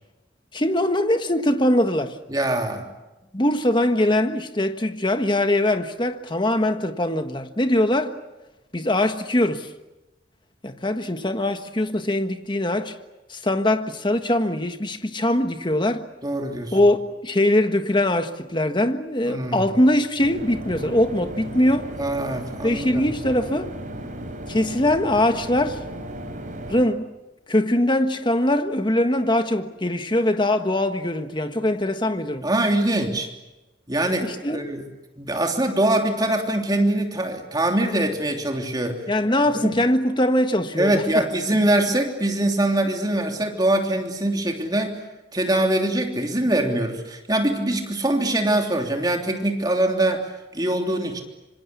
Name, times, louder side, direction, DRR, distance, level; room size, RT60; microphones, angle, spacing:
voice 1, 0.5-2.2 3.3-8.1 8.7-9.7 10.6-13.0 13.3-16.0 16.7-21.9 22.6-23.7 24.5-25.8 26.7-27.1 27.5-32.5 34.2-34.6 39.1-41.2, left 1 dB, 25° left, 1.5 m, -22 dB
voice 2, 2.3-2.9 16.2-16.8 19.2-19.7 22.0-23.0 32.4-33.3 33.9-34.8 35.2-39.0 39.5-39.7 40.8-45.0 45.3-50.2 50.5-51.2, right 1 dB, 20° right, 3.2 m, -23 dB
sound 1, 20.2-26.8, right 1 dB, 40° right, 5.1 m, -35 dB
26.0 x 26.0 x 8.4 m
head